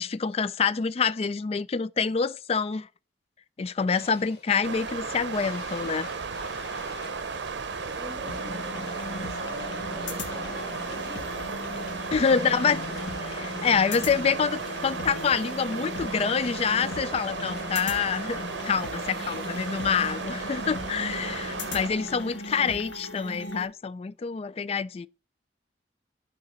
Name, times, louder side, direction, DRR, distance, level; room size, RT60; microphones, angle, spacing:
voice 1, 0.0-2.9 3.6-6.1 8.3-8.4 12.1-25.1, left 6 dB, 35° left, 0.3 m, -27 dB
sound 1, 3.9-4.6 5.3-22.7, left 1 dB, 55° left, 2.1 m, -44 dB
sound 2, 4.6-21.9, right 5 dB, 70° right, 0.7 m, -35 dB
voice 2, 7.9-11.3 12.3-12.7 19.0-19.6, right 1 dB, 25° right, 1.2 m, -45 dB
sound 3, 8.3-23.7, left 2 dB, 80° left, 1.4 m, -38 dB
11.5 x 3.9 x 4.1 m
head